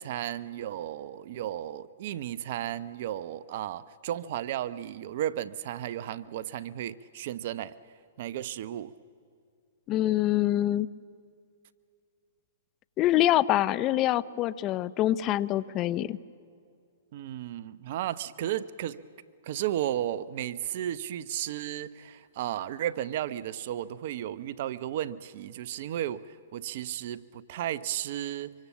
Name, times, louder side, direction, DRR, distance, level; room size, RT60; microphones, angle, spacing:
voice 1, 0.0-7.7 8.2-8.9 17.1-19.0 19.4-28.5, right 12 dB, 55° right, 16 dB, 0.7 m, -34 dB
voice 2, 9.9-10.9 13.0-16.2, left 13 dB, 35° left, 18 dB, 0.6 m, -25 dB
25.5 x 24.0 x 7.3 m, 2.3 s
hypercardioid pair, 120°, 0 cm